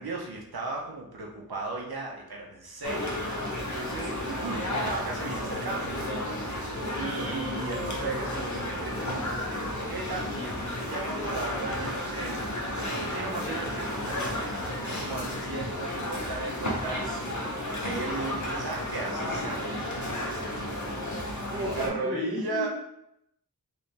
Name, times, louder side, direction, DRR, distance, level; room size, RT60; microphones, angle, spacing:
voice 1, 0.0-5.9 6.6-17.3 17.8-20.4 21.8-22.7, right 3 dB, 80° right, -1 dB, 0.6 m, -36 dB
sound 1, 2.8-21.9, left 1 dB, 50° left, 0.7 m, -32 dB
voice 2, 21.4-22.7, equal, 15° right, -3 dB, 0.9 m, -33 dB
3.2 x 3.0 x 2.7 m, 0.80 s
wide cardioid pair, 45°, 37 cm